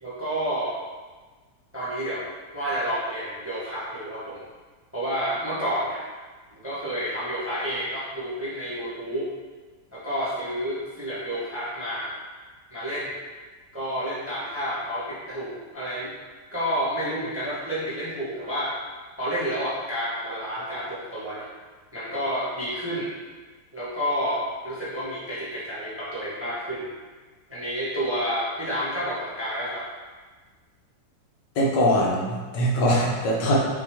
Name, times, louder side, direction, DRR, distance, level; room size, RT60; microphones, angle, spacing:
voice 1, 0.0-0.7 1.7-4.4 4.9-6.0 6.5-9.3 9.9-12.2 12.7-13.1 13.7-16.1 16.5-18.7 19.2-21.5 21.9-23.1 23.7-26.9 27.5-29.9, equal, 10° right, -10 dB, 0.8 m, -30 dB
voice 2, 31.6-33.6, equal, 80° left, -4 dB, 1.5 m, -22 dB
5.7 x 2.5 x 3.5 m, 1.4 s
omnidirectional pair, 1.9 m